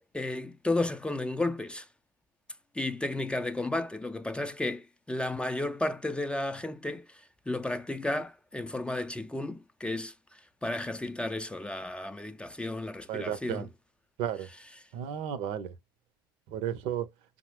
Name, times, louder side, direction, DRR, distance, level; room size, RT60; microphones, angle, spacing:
voice 1, 0.1-1.9 2.7-10.1 10.6-13.7, left 2 dB, 10° left, 0.5 m, -33 dB
voice 2, 13.1-13.7 14.2-14.5 14.9-15.7 16.5-17.1, right 9 dB, 60° right, 0.7 m, -33 dB
5.3 x 2.0 x 3.2 m
figure-of-eight pair, 60°, 11 cm